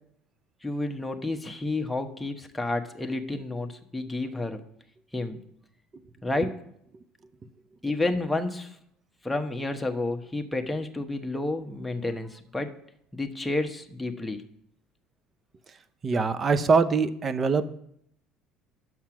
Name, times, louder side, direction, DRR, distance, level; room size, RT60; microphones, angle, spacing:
voice 1, 0.6-4.6 5.1-5.4 6.2-6.5 7.8-8.8 9.2-12.7 13.1-14.4, left 2 dB, 5° left, 4 dB, 1.1 m, -30 dB
voice 2, 16.0-17.7, right 4 dB, 35° right, 13 dB, 0.7 m, -23 dB
7.1 x 6.1 x 5.9 m, 0.72 s
supercardioid pair, 80°, 0 cm